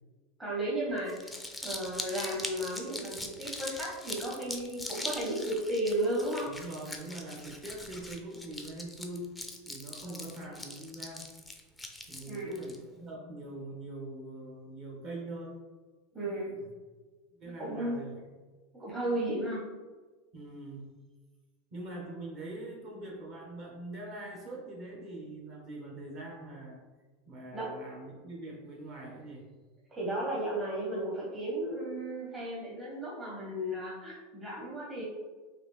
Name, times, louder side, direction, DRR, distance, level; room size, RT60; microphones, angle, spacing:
voice 1, 0.4-1.3 1.6-6.5 10.0-10.5 12.2-12.6 16.1-16.5 17.6-18.0 18.7-19.6 27.5-27.7 29.9-35.0, right 1 dB, 20° right, -5 dB, 1.1 m, -34 dB
Crumpling crinkling, 1.0-12.8, left 1 dB, 5° left, 0.5 m, -42 dB
voice 2, 6.5-9.4 9.7-11.3 12.1-15.6 16.2-16.7 17.4-18.2 20.3-21.0 21.7-26.8 27.3-29.5, right 2 dB, 40° right, -2 dB, 1.3 m, -43 dB
4.0 x 2.7 x 3.3 m, 1.3 s
supercardioid pair, 120°, 0 cm